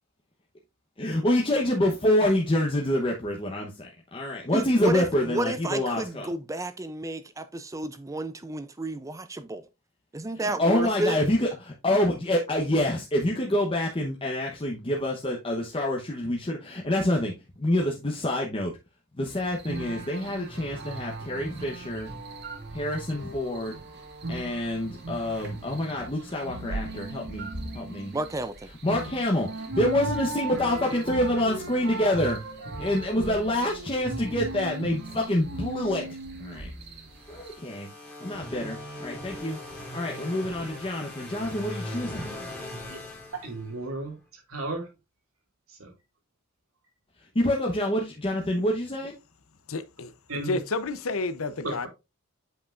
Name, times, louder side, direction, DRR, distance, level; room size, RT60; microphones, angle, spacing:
voice 1, 1.0-6.3 10.4-17.3 17.6-18.7 19.2-22.1 22.7-23.8 24.3-27.5 27.7-28.1 28.8-32.4 32.8-36.1 36.4-36.7 37.3-37.9 38.2-39.6 39.9-42.3 47.3-49.2, left 1 dB, 25° left, 1.0 m, -27 dB
voice 2, 4.5-9.7 10.1-11.2 28.1-28.6, right 2 dB, 15° right, 0.4 m, -31 dB
sound 1, 19.3-37.5, right 2 dB, 50° right, 1.6 m, -37 dB
sound 2, 37.1-44.0, left 1 dB, 10° left, 2.3 m, -40 dB
voice 3, 43.3-44.9 45.7-45.9 50.3-50.6 51.6-51.9, right 2 dB, 75° right, 2.3 m, -34 dB
voice 4, 49.7-50.1 50.5-51.9, left 3 dB, 70° left, 0.7 m, -30 dB
7.9 x 5.4 x 2.5 m
head